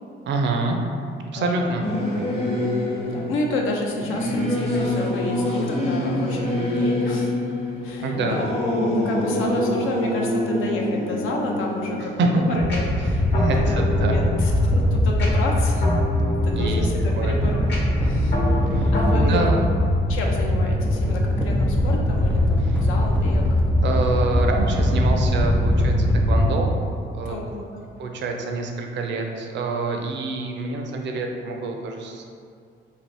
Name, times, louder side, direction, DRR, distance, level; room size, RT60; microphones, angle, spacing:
voice 1, 0.3-0.8 1.3-1.8 8.0-8.4 12.2-12.4 13.4-14.2 16.5-16.9 17.2-17.4 18.7-19.7 22.6-22.8 23.8-26.7 27.1-27.3 28.0-32.2, right 3 dB, 65° right, 2 dB, 0.5 m, -26 dB
voice 2, 1.3-1.9 3.0-7.3 7.8-8.5 9.0-15.9 16.4-17.7 18.0-18.4 18.9-19.5 20.1-24.0 27.3-27.8, left 2 dB, 85° left, 0 dB, 0.5 m, -30 dB
Singing / Musical instrument, 1.8-13.7, left 1 dB, 30° left, 0.7 m, -26 dB
sound 1, 12.6-26.6, left 1 dB, 10° left, 0.4 m, -21 dB
sound 2, 12.7-19.4, equal, 60° left, 1.0 m, -29 dB
2.7 x 2.4 x 3.3 m, 2.3 s
cardioid pair, 90°, 20 cm